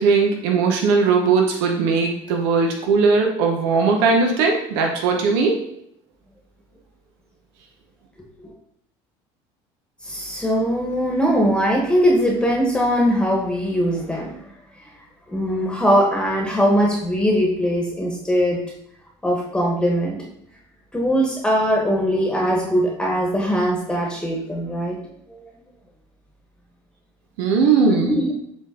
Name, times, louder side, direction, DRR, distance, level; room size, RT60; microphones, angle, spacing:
voice 1, 0.0-5.7 27.4-28.2, right 4 dB, 90° right, 2 dB, 1.0 m, -19 dB
voice 2, 10.0-14.3 15.3-18.6 19.2-20.2 20.9-25.0 25.3-25.5 28.1-28.2, equal, 5° left, -2 dB, 1.2 m, -20 dB
7.2 x 3.8 x 3.8 m, 0.74 s
cardioid pair, 120°, 12 cm